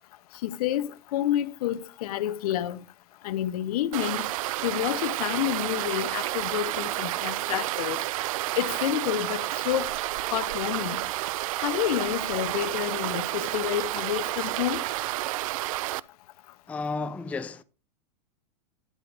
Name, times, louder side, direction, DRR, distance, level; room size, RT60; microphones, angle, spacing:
voice 1, 0.4-2.8 3.2-4.3 4.6-8.0 8.5-10.0 10.3-11.0 11.6-14.8, left 12 dB, 60° left, 0.7 m, -29 dB
sound 1, 3.9-16.0, right 17 dB, 55° right, 0.4 m, -30 dB
voice 2, 16.7-17.6, left 4 dB, 5° left, 0.4 m, -32 dB
10.5 x 7.6 x 3.3 m
hypercardioid pair, 110°, 21 cm